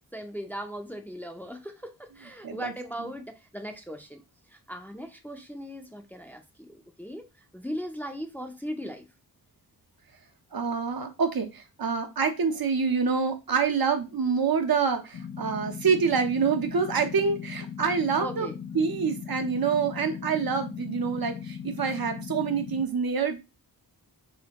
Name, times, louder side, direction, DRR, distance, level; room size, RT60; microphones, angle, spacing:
voice 1, 0.1-4.2 4.5-7.3 7.5-9.1 18.2-18.6, equal, 5° left, 0.5 m, -38 dB
voice 2, 10.5-18.5 18.7-23.4, right 5 dB, 70° right, 0.8 m, -26 dB
sound 1, 15.1-22.8, left 7 dB, 50° left, 0.5 m, -38 dB
4.2 x 3.3 x 2.9 m
wide cardioid pair, 110°, 38 cm